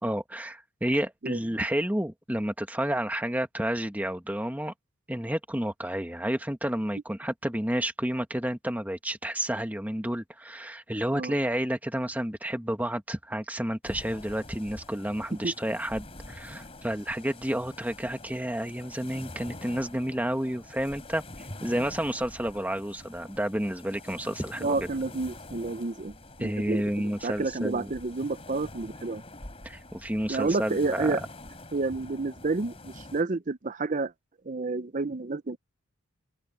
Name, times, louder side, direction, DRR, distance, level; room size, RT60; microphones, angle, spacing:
voice 1, 0.0-4.7 5.1-24.8 26.4-27.9 29.6-31.2, right 1 dB, 5° right, 1.6 m, -30 dB
sound 1, 13.8-33.2, left 2 dB, 25° left, 3.6 m, -46 dB
voice 2, 24.6-29.2 30.3-31.2 31.7-34.1 34.4-35.6, right 3 dB, 35° right, 0.6 m, -30 dB
open air
head